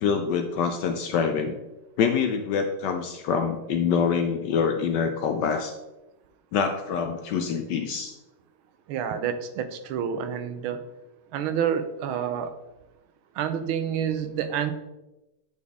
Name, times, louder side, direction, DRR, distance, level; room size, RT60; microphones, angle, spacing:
voice 1, 0.0-1.6 2.0-5.7 6.5-8.1, left 6 dB, 75° left, 6 dB, 1.0 m, -25 dB
voice 2, 8.9-10.8 11.3-12.5 13.4-14.7, right 8 dB, 80° right, 10 dB, 1.5 m, -28 dB
9.3 x 4.2 x 3.5 m, 0.99 s
omnidirectional pair, 2.3 m